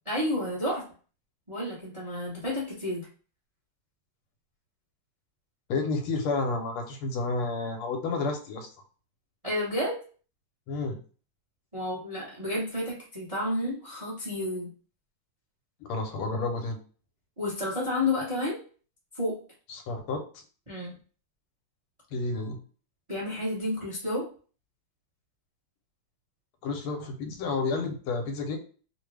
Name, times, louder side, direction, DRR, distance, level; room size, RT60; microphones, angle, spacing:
voice 1, 0.0-0.8 1.5-3.1 9.4-10.0 11.7-14.7 17.4-18.6 19.1-19.4 20.7-21.0 23.1-24.3, left 1 dB, 25° right, -5 dB, 0.7 m, -30 dB
voice 2, 5.7-8.7 10.7-11.0 15.8-16.8 19.7-20.2 22.1-22.6 26.6-28.6, left 3 dB, 85° left, 4 dB, 1.6 m, -30 dB
3.6 x 2.1 x 3.2 m, 0.39 s
omnidirectional pair, 2.3 m